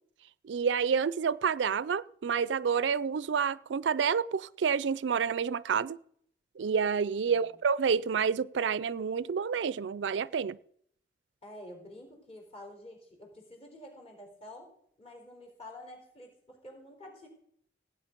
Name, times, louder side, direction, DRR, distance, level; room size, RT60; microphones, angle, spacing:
voice 1, 0.4-6.0 6.6-10.6, right 6 dB, 90° right, 0.4 m, -29 dB
voice 2, 11.4-14.7 15.0-17.3, left 1 dB, 35° left, 4.2 m, -49 dB
17.0 x 8.8 x 5.2 m
head